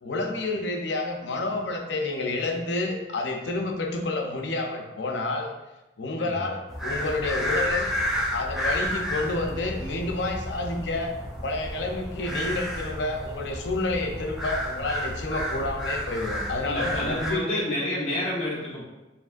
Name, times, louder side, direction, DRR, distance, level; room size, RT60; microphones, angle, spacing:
voice 1, 0.0-5.5 6.0-7.9 8.3-11.2 11.4-17.6, left 2 dB, 80° left, 3 dB, 0.6 m, -29 dB
voice 2, 6.2-6.5 16.6-18.8, left 1 dB, 35° left, -6 dB, 1.2 m, -29 dB
sound 1, 6.7-17.3, equal, ahead, 0.6 m, -31 dB
5.0 x 3.2 x 2.4 m, 1.0 s
head